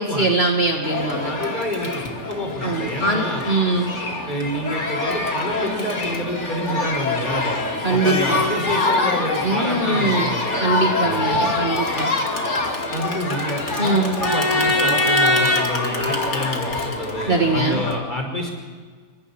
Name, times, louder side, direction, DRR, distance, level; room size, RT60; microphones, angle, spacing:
voice 1, 0.0-1.3 2.6-3.9 7.8-8.5 9.4-10.3 10.6-12.1 13.8-14.2 17.3-17.9, right 2 dB, 35° right, 1 dB, 2.4 m, -22 dB
Crowd, 0.8-18.0, left 2 dB, 40° left, 2.7 m, -24 dB
voice 2, 1.2-3.4 4.2-11.5 12.9-18.5, equal, 25° left, 1 dB, 5.9 m, -28 dB
28.0 x 24.5 x 4.5 m, 1.5 s
omnidirectional pair, 1.8 m